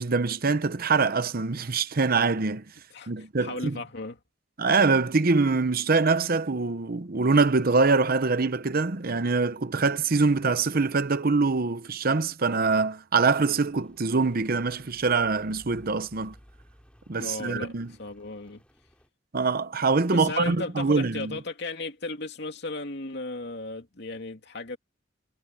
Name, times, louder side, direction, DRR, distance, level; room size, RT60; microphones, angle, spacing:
voice 1, 0.0-2.6 3.1-3.8 4.6-16.3 17.1-17.9 19.3-21.4, right 4 dB, 50° right, 0.9 m, -24 dB
voice 2, 3.4-4.2 17.2-17.7 18.0-18.6 20.1-24.8, left 2 dB, 60° left, 2.7 m, -35 dB
Rain, 13.3-19.1, equal, 5° left, 7.4 m, -57 dB
head